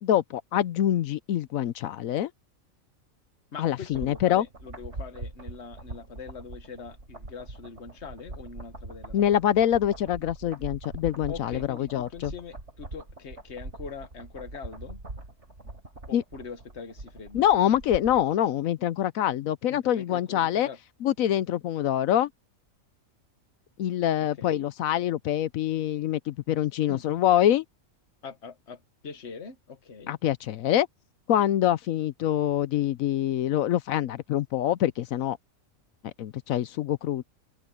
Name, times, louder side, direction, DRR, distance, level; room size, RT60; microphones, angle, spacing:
voice 1, 0.0-2.3 3.6-4.5 9.1-12.3 16.1-16.2 17.3-20.7 21.0-22.3 23.8-27.6 30.1-30.9 31.3-35.4 36.2-37.2, left 11 dB, 75° left, 1.0 m, -25 dB
voice 2, 3.5-9.2 11.3-15.0 16.1-17.5 19.7-20.8 24.4-24.6 26.9-27.0 28.2-30.2, left 5 dB, 55° left, 1.6 m, -42 dB
sound 1, 3.6-18.3 18.6-18.7, right 2 dB, 55° right, 4.4 m, -42 dB
open air
omnidirectional pair, 1.5 m